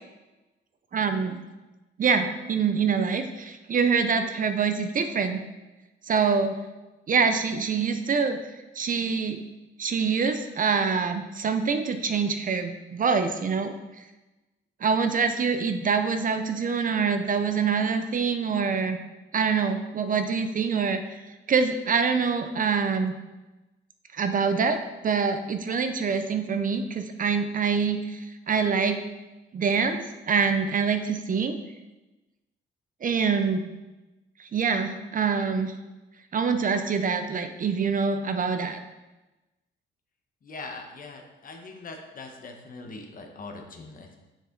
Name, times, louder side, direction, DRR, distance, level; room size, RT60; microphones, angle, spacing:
voice 1, 0.9-1.4 2.0-5.4 6.0-6.6 7.1-8.4 8.8-9.4 9.8-13.7 14.8-19.0 19.3-21.0 21.5-23.1 24.1-29.0 29.5-31.6 33.0-33.7 34.4-35.7 36.3-38.8, right 5 dB, 40° right, 8 dB, 0.6 m, -25 dB
voice 2, 40.4-44.2, left 3 dB, 45° left, 3 dB, 1.2 m, -41 dB
6.7 x 6.4 x 3.9 m, 1.1 s
cardioid pair, 105°, 20 cm